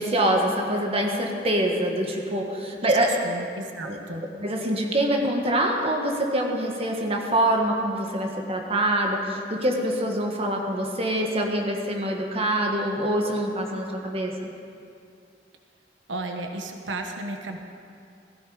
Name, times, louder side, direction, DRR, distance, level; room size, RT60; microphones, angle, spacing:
voice 1, 0.0-3.1 3.8-4.0 4.4-14.3, right 1 dB, 30° right, 1 dB, 1.6 m, -25 dB
voice 2, 3.2-4.2 16.1-17.6, right 2 dB, 90° right, 4 dB, 1.3 m, -33 dB
17.0 x 15.0 x 5.0 m, 2.4 s
head